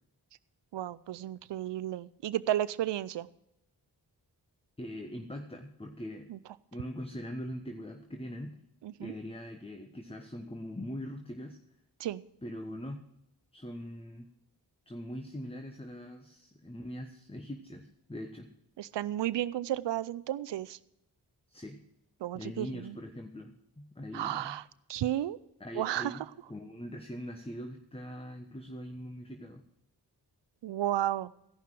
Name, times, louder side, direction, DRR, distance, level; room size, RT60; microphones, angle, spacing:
voice 1, 0.7-3.3 6.3-6.4 8.8-9.1 12.0-12.2 18.8-20.8 22.2-23.0 24.1-24.6 24.9-25.4 25.7-26.2 30.6-31.3, right 12 dB, 80° right, 18 dB, 0.6 m, -33 dB
voice 2, 4.8-6.3 6.7-8.6 9.0-11.6 12.4-13.0 13.5-14.3 14.9-18.5 21.5-21.8 22.3-24.6 25.6-26.2 26.5-29.6, equal, 15° left, 5 dB, 1.2 m, -42 dB
15.5 x 5.8 x 7.5 m, 0.82 s
cardioid pair, 40°, 42 cm